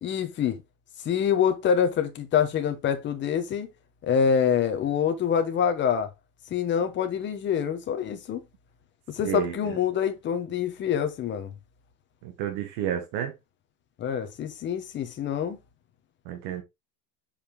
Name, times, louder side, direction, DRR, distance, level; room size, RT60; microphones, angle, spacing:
voice 1, 0.0-0.6 1.0-3.7 4.0-6.1 6.5-8.4 9.1-11.5 14.0-15.6, left 8 dB, 25° left, 1.3 m, -26 dB
voice 2, 9.2-9.8 12.2-13.3 16.3-16.6, right 10 dB, 50° right, 1.7 m, -31 dB
7.1 x 5.4 x 3.5 m
supercardioid pair, 155°, 45 cm